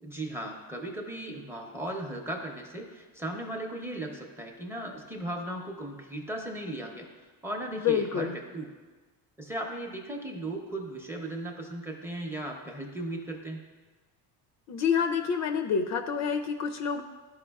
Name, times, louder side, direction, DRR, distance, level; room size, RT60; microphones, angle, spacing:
voice 1, 0.0-7.1 7.4-8.7 9.4-13.6, right 1 dB, 5° right, 2 dB, 0.6 m, -37 dB
voice 2, 7.7-8.4 14.7-17.0, left 7 dB, 50° left, 7 dB, 0.4 m, -28 dB
11.5 x 4.7 x 2.3 m, 1.4 s
cardioid pair, 140°, 36 cm